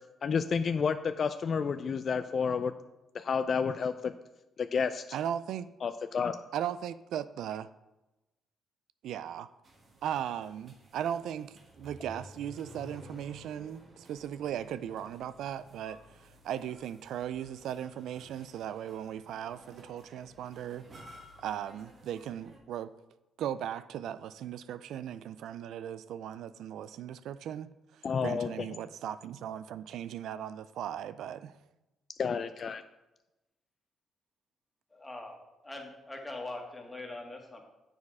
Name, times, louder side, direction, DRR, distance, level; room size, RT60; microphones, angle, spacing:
voice 1, 0.2-2.7 3.1-4.1 4.6-5.0 5.8-6.3 28.0-28.5 32.2-32.8, left 6 dB, 50° left, 10 dB, 0.3 m, -30 dB
voice 2, 5.1-5.7 6.5-7.6 9.0-9.5 10.0-22.9 23.4-31.5, right 10 dB, 80° right, 15 dB, 0.3 m, -38 dB
sound 1, 9.6-22.6, right 1 dB, 45° right, 1.5 m, -58 dB
Accelerating revving vroom, 11.5-17.2, equal, 25° right, 2.6 m, -53 dB
voice 3, 34.9-35.3 35.6-37.6, left 2 dB, 15° left, 1 dB, 1.7 m, -42 dB
7.3 x 6.2 x 4.8 m, 0.99 s
cardioid pair, 90°, 0 cm